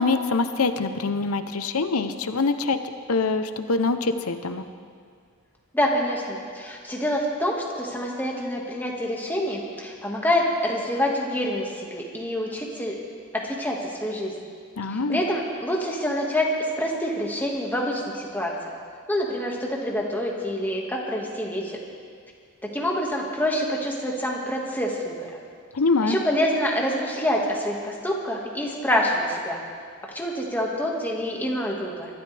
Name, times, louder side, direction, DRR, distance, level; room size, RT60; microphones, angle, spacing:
voice 1, 0.0-2.8 3.1-4.6 14.8-15.2 25.7-26.2, left 3 dB, 85° left, 9 dB, 0.8 m, -24 dB
voice 2, 5.7-12.9 13.3-14.3 14.9-18.7 19.1-21.8 22.6-25.4 26.0-29.6 30.1-32.1, equal, 10° left, -2 dB, 1.8 m, -26 dB
24.0 x 12.5 x 3.4 m, 2.1 s
head